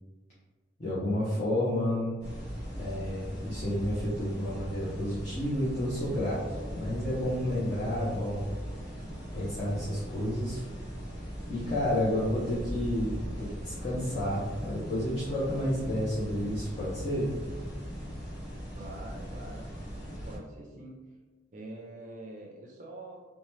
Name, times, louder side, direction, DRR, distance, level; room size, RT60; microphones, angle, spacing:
voice 1, 0.8-2.1 2.8-8.5 9.3-10.6 11.5-17.3, left 1 dB, 35° left, -9 dB, 0.6 m, -30 dB
sound 1, 2.2-20.4, equal, 65° left, 1.2 m, -39 dB
voice 2, 18.7-19.7 20.3-21.0 21.5-23.2, right 2 dB, 40° right, -1 dB, 0.4 m, -45 dB
2.8 x 2.2 x 3.1 m, 1.3 s
head